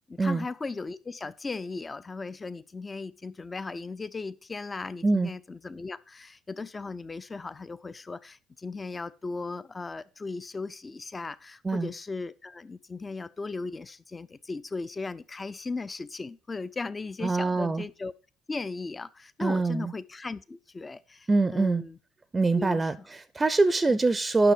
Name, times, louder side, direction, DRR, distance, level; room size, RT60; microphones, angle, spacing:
voice 1, 0.1-18.1 18.5-22.0 22.5-23.1 23.9-24.0, left 3 dB, 25° left, 0.5 m, -37 dB
voice 2, 17.2-17.8 19.4-19.9 21.3-21.8 22.3-24.5, right 3 dB, 20° right, 0.6 m, -24 dB
10.0 x 6.6 x 5.1 m
figure-of-eight pair, 50°, 0 cm